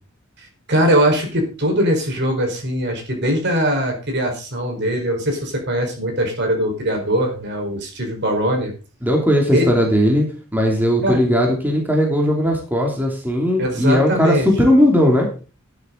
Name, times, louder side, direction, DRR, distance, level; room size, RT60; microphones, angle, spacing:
voice 1, 0.4-8.7 9.5-9.7 11.0-11.2 13.6-14.5, equal, 55° right, 3 dB, 4.7 m, -21 dB
voice 2, 9.0-10.2 10.5-15.3, equal, 10° right, 0 dB, 3.0 m, -17 dB
12.5 x 10.5 x 3.9 m, 0.34 s
head